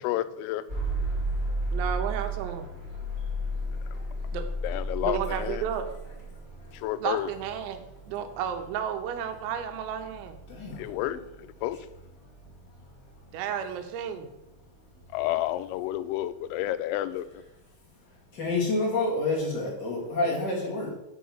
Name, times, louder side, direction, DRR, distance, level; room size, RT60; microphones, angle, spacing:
voice 1, 0.0-0.6 4.6-5.6 6.7-7.3 10.8-11.2 11.6-11.8 15.1-17.3, left 14 dB, 85° left, 13 dB, 3.2 m, -30 dB
sound 1, 0.7-16.6, right 1 dB, 20° right, 2.2 m, -35 dB
voice 2, 1.7-2.7 4.3-4.5 5.0-5.9 7.0-10.4 13.3-14.3, right 8 dB, 90° right, 6 dB, 3.6 m, -32 dB
voice 3, 3.0-4.3 6.3-6.8 10.5-11.2 12.2-12.3 12.7-13.2 18.0-20.9, left 2 dB, 50° left, -3 dB, 1.2 m, -31 dB
6.7 x 6.2 x 7.1 m, 0.89 s
omnidirectional pair, 5.9 m